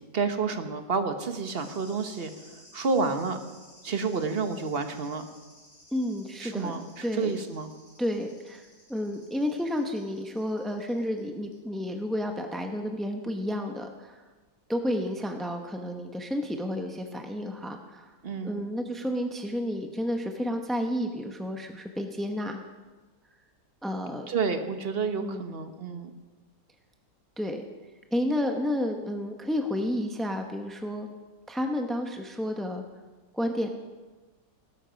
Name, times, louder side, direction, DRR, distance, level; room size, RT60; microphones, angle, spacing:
voice 1, 0.0-3.4 3.8-5.3 6.4-7.7 18.2-18.6 24.3-26.1, right 4 dB, 40° right, 7 dB, 1.1 m, -30 dB
sound 1, 1.4-11.2 11.5-11.6, left 1 dB, 30° left, 6.7 m, -55 dB
voice 2, 5.9-6.7 7.0-7.4 8.0-14.2 14.7-18.2 18.4-22.6 23.8-24.3 25.2-25.5 27.4-27.7 28.1-31.1 31.5-32.8 33.3-33.7, equal, ahead, 4 dB, 0.4 m, -31 dB
18.5 x 12.5 x 5.1 m, 1.3 s
omnidirectional pair, 1.8 m